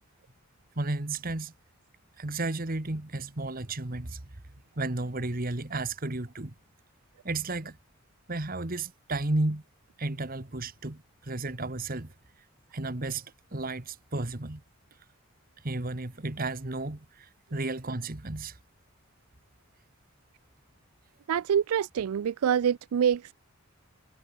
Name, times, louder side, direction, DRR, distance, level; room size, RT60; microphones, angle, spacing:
voice 1, 0.8-1.5 2.2-4.2 4.8-6.5 7.2-7.8 8.3-9.6 10.0-12.1 12.7-13.3 13.5-14.6 15.6-18.6, right 2 dB, 40° right, 1.5 m, -33 dB
voice 2, 21.3-23.3, right 8 dB, 85° right, 0.4 m, -26 dB
head